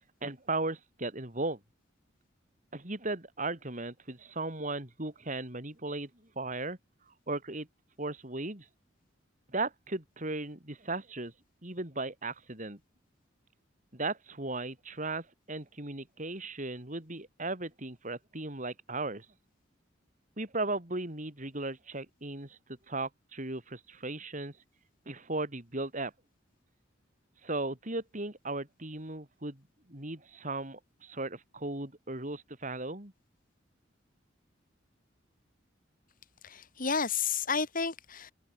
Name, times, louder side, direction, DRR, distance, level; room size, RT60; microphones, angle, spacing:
voice 1, 0.2-1.6 2.7-6.1 6.4-6.8 7.3-7.7 8.0-8.7 9.5-11.3 11.6-12.8 13.9-19.3 20.4-22.6 22.9-24.5 25.1-26.1 27.4-29.6 29.9-33.1, right 2 dB, 40° right, 3.8 m, -36 dB
voice 2, 36.4-38.3, left 5 dB, 45° left, 2.2 m, -31 dB
head